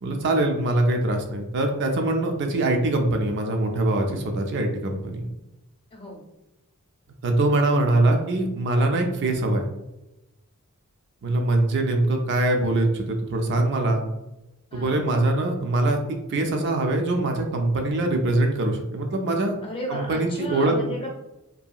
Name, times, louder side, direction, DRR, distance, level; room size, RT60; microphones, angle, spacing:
voice 1, 0.0-5.2 7.2-9.6 11.2-14.0 14.7-16.0 16.3-19.5 19.9-20.7, right 2 dB, 50° right, 3 dB, 0.4 m, -23 dB
voice 2, 5.9-6.3 14.7-15.1 19.6-21.1, equal, 25° left, -2 dB, 0.7 m, -34 dB
2.7 x 2.7 x 2.3 m, 0.96 s
head